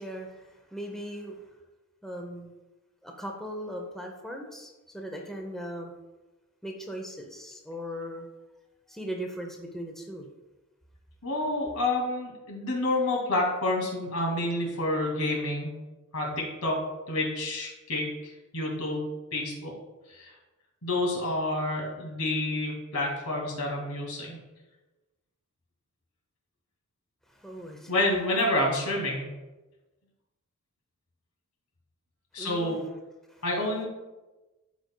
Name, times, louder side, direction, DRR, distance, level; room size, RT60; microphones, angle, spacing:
voice 1, 0.0-1.4 2.0-2.5 3.0-5.9 6.6-8.3 8.9-10.3 27.3-27.9 32.4-32.8 33.3-33.4, equal, ahead, 1 dB, 0.7 m, -38 dB
voice 2, 11.2-15.8 16.1-16.8 17.1-19.7 20.1-20.3 20.8-24.4 27.9-29.3 32.3-32.8 33.4-33.9, left 1 dB, 85° left, -1 dB, 2.2 m, -29 dB
13.0 x 5.1 x 2.3 m, 1.1 s
head